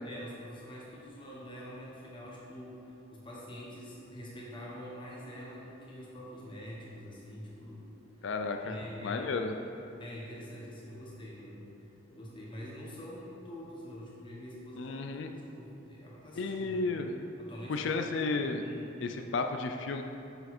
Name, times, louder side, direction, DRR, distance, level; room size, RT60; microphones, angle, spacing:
voice 1, 0.0-7.8 8.1-8.3 8.6-9.4 10.0-11.7 12.1-15.0 15.3-16.8 17.4-18.1 18.6-18.9, equal, 25° left, -5 dB, 1.3 m, -45 dB
voice 2, 8.2-9.5 14.8-15.3 16.4-17.1 17.7-18.6 19.0-20.0, left 3 dB, 65° left, 5 dB, 0.4 m, -33 dB
6.8 x 6.5 x 4.3 m, 2.8 s
head